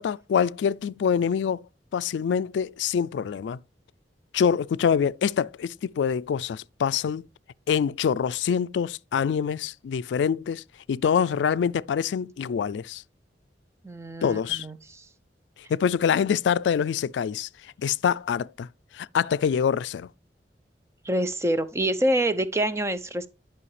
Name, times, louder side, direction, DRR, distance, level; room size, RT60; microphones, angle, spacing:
voice 1, 0.0-1.6 1.9-3.6 4.3-7.2 7.7-10.6 10.9-13.0 14.2-14.7 15.7-17.5 17.8-18.7 18.9-20.1, left 7 dB, 90° left, 0.3 m, -25 dB
voice 2, 13.8-14.8 21.0-23.3, right 1 dB, 15° right, 0.6 m, -26 dB
11.0 x 5.6 x 3.2 m
head